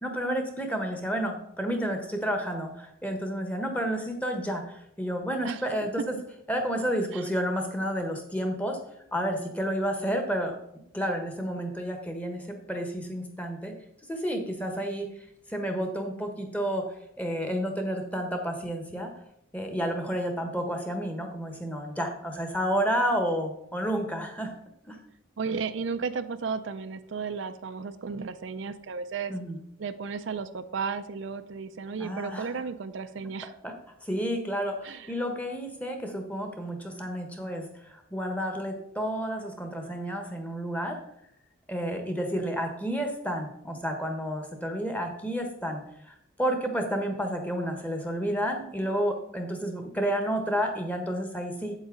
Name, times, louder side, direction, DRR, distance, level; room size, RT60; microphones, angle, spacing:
voice 1, 0.0-6.0 6.5-8.8 9.1-10.5 10.9-13.7 14.1-15.1 15.5-16.8 17.2-19.1 19.5-24.5 24.9-25.0 29.3-29.6 32.0-32.5 33.6-33.7 34.0-41.0 41.7-45.8 46.1-51.7, equal, 5° left, 4 dB, 1.1 m, -30 dB
voice 2, 25.4-29.3 29.8-33.5 34.8-35.1, right 5 dB, 65° right, 11 dB, 0.4 m, -34 dB
8.1 x 8.1 x 3.8 m, 0.75 s
head